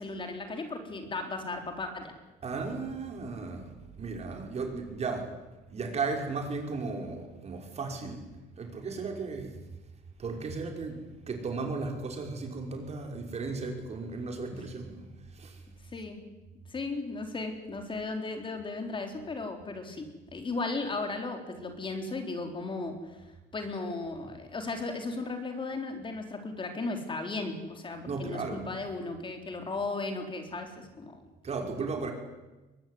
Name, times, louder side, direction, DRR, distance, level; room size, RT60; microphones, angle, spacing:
voice 1, 0.0-2.1 14.5-14.6 15.9-16.2 16.7-23.2 23.5-31.2, left 3 dB, 30° left, 5 dB, 4.3 m, -36 dB
voice 2, 2.4-3.7 4.0-5.3 5.7-8.3 8.6-9.5 10.2-15.1 15.3-15.6 28.0-28.7 31.4-32.1, right 4 dB, 40° right, 3 dB, 5.8 m, -35 dB
23.0 x 20.0 x 9.6 m, 1.1 s
cardioid pair, 110°, 17 cm